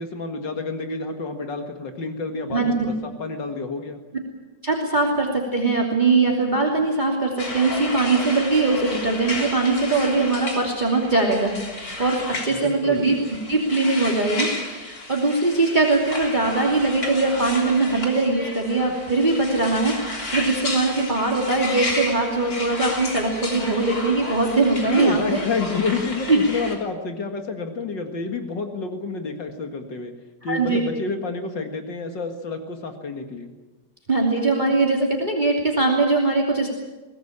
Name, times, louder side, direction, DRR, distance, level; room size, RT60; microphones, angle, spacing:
voice 1, 0.0-4.0 12.5-13.1 24.8-30.1 30.4-33.5, left 4 dB, 75° left, 5 dB, 2.5 m, -29 dB
voice 2, 2.5-2.9 4.6-13.2 13.5-25.4 26.3-26.4 30.4-30.8 34.1-36.7, right 3 dB, 25° right, -1 dB, 2.9 m, -21 dB
sound 1, 7.4-26.8, left 2 dB, 50° left, 4.0 m, -32 dB
23.0 x 18.5 x 8.6 m, 1.2 s
omnidirectional pair, 2.0 m